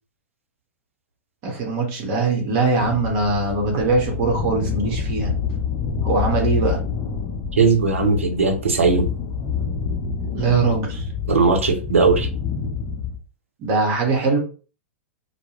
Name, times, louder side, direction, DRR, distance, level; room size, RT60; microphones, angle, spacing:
voice 1, 1.4-5.3 6.0-6.8 10.3-11.0 13.6-14.4, right 3 dB, 40° right, 1 dB, 0.8 m, -21 dB
sound 1, 2.8-13.2, left 6 dB, 25° left, 0.5 m, -27 dB
voice 2, 7.6-9.1 11.3-12.3, right 4 dB, 75° right, 5 dB, 0.6 m, -18 dB
2.2 x 2.0 x 3.0 m, 0.36 s
figure-of-eight pair, 100°, 7 cm